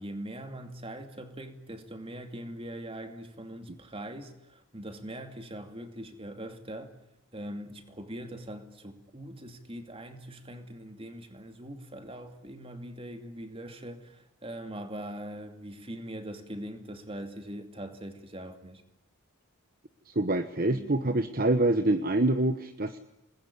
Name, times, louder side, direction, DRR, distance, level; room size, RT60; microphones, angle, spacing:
voice 1, 0.0-6.9 7.3-18.8 20.7-20.9, right 1 dB, 25° right, 2.5 m, -42 dB
voice 2, 20.1-23.0, right 2 dB, 45° right, 1.1 m, -26 dB
27.0 x 20.5 x 9.9 m
head